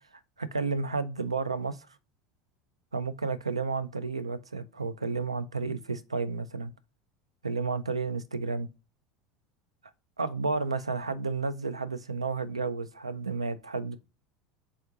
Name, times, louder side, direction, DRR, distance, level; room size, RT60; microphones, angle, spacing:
voice 1, 0.4-1.9 2.9-6.7 7.4-8.7 10.2-14.0, right 4 dB, 85° right, 0.3 m, -31 dB
3.5 x 3.4 x 3.6 m
figure-of-eight pair, 75°, 3 cm